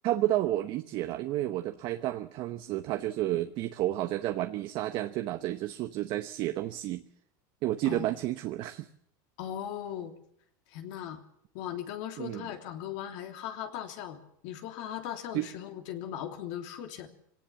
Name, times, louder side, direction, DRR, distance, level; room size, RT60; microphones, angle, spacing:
voice 1, 0.0-7.0 7.6-8.9 12.2-12.5 15.3-15.4, right 14 dB, 50° right, 8 dB, 1.0 m, -31 dB
voice 2, 9.4-10.1 10.7-11.2 11.5-17.1, left 10 dB, 65° left, 5 dB, 3.1 m, -38 dB
23.0 x 18.0 x 7.2 m, 0.67 s
supercardioid pair, 130°, 10 cm